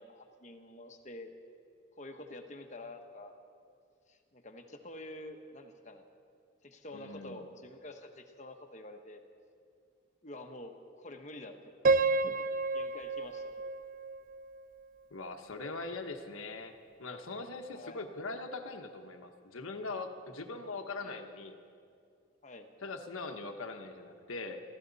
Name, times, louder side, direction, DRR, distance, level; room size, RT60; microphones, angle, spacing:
voice 1, 0.0-1.3 2.0-3.4 4.1-6.1 6.6-9.2 10.2-11.7 12.2-12.4 12.7-13.6 17.7-18.1 21.0-21.2 22.4-22.7, left 1 dB, 35° left, 5 dB, 1.1 m, -48 dB
voice 2, 6.9-7.4 15.1-21.6 22.8-24.6, left 3 dB, 85° left, 6 dB, 1.2 m, -41 dB
Piano, 11.8-14.9, right 3 dB, 40° right, 0.4 m, -30 dB
23.5 x 15.0 x 4.1 m, 2.4 s
head